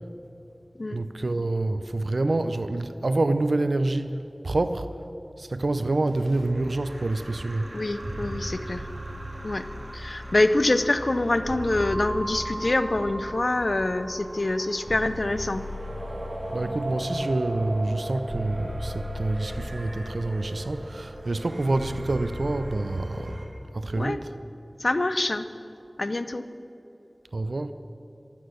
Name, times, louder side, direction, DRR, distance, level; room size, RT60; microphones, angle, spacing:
voice 1, 0.9-4.2 4.4-4.9 5.4-7.7 16.5-23.4 23.7-24.3 27.3-27.7, right 2 dB, 90° right, 10 dB, 0.5 m, -27 dB
sound 1, 5.9-23.4, equal, 70° right, 2.1 m, -36 dB
voice 2, 7.7-8.8 9.4-9.7 9.9-15.6 24.0-24.2 24.8-25.5 26.0-26.5, left 2 dB, 65° left, 11 dB, 0.7 m, -25 dB
15.5 x 11.5 x 6.3 m, 2.9 s
wide cardioid pair, 40°, 0 cm